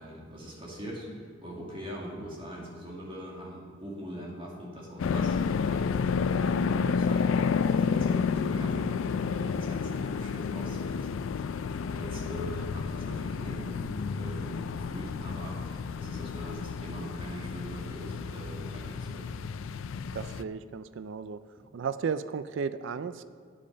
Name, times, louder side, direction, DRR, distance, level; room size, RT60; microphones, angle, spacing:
voice 1, 0.0-11.1 11.4-19.4, equal, 25° right, -3 dB, 2.0 m, -42 dB
sound 1, 5.0-20.4, left 5 dB, 65° left, 0.3 m, -30 dB
voice 2, 20.1-21.4 21.7-23.2, right 6 dB, 60° right, 14 dB, 0.3 m, -34 dB
8.8 x 8.6 x 5.1 m, 2.2 s
head